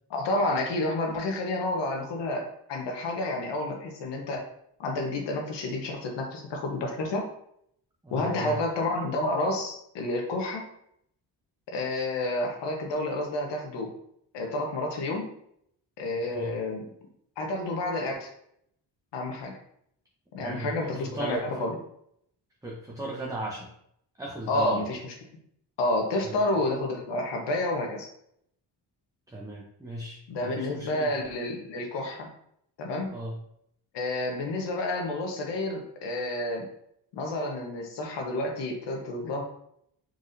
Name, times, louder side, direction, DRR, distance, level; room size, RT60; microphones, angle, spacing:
voice 1, 0.1-4.4 4.8-7.3 8.1-10.6 11.7-13.9 14.3-15.3 16.0-16.8 17.4-18.3 19.1-19.5 20.3-21.7 24.5-25.0 25.8-28.1 30.3-32.3 32.8-33.1 33.9-36.7 37.1-39.4, left 2 dB, 80° left, 1 dB, 1.2 m, -30 dB
voice 2, 8.0-8.6 16.3-16.6 20.4-21.4 22.6-23.7 24.2-25.0 26.2-26.5 29.3-31.2 33.1-33.4, right 1 dB, 10° right, -3 dB, 0.7 m, -37 dB
4.6 x 4.1 x 2.6 m, 0.71 s
cardioid pair, 105°, 42 cm